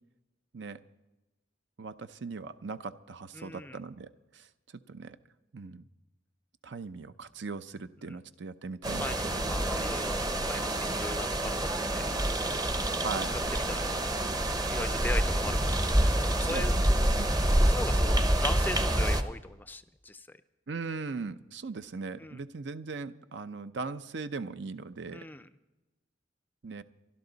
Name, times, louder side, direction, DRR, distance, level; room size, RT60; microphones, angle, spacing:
voice 1, 1.8-4.5 4.9-5.2 5.5-5.8 6.6-9.9 13.0-13.4 16.5-16.8 17.2-17.3 20.7-25.3 26.6-26.8, right 4 dB, 65° right, 11 dB, 0.6 m, -39 dB
voice 2, 3.3-3.8 8.1-8.2 9.0-12.1 13.5-13.9 14.7-17.1 17.6-20.4 22.2-22.4 25.1-25.5, left 2 dB, 10° left, 12 dB, 0.4 m, -39 dB
sound 1, 8.8-19.2, right 1 dB, 20° right, 0.8 m, -27 dB
24.0 x 12.0 x 4.0 m, 1.1 s
head